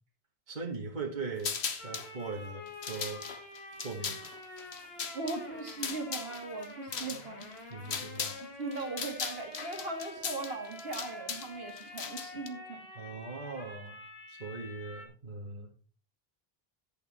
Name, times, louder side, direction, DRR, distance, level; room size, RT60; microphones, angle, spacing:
voice 1, 0.5-3.2 3.8-4.2 6.9-7.0 7.7-8.4 13.0-14.0 14.3-15.7, right 4 dB, 50° right, 1 dB, 1.9 m, -40 dB
sound 1, 1.4-2.1 2.7-8.4 8.7-12.5, left 6 dB, 85° left, 1.4 m, -38 dB
sound 2, 1.8-15.1, left 2 dB, 70° left, 2.6 m, -47 dB
voice 2, 5.1-7.5 8.3-12.8, right 3 dB, 70° right, 2 dB, 2.2 m, -39 dB
10.5 x 8.3 x 4.1 m, 0.37 s
omnidirectional pair, 1.1 m